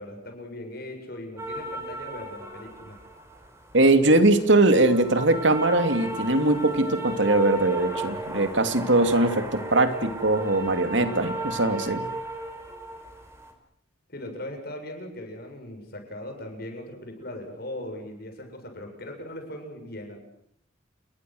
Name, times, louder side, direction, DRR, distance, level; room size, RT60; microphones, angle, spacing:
voice 1, 0.0-3.0 14.1-20.2, left 1 dB, 50° left, 4 dB, 7.6 m, -39 dB
sound 1, 1.4-13.5, right 2 dB, 15° right, 5.2 m, -35 dB
voice 2, 3.7-12.0, right 2 dB, 70° right, 8 dB, 2.7 m, -21 dB
29.5 x 22.0 x 8.0 m, 0.71 s
head